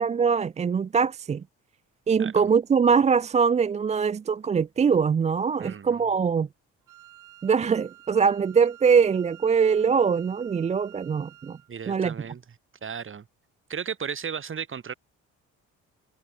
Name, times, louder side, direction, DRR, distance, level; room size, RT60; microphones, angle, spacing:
voice 1, 0.0-1.4 2.1-6.5 7.4-11.6 11.9-12.1, right 6 dB, 25° right, 0.4 m, -22 dB
voice 2, 5.6-6.1 11.7-12.4 12.8-13.3 13.7-14.9, right 7 dB, 40° right, 2.6 m, -35 dB
Wind instrument woodwind instrument, 6.9-11.7, right 14 dB, 85° right, 4.5 m, -51 dB
cardioid pair, 90°, 30 cm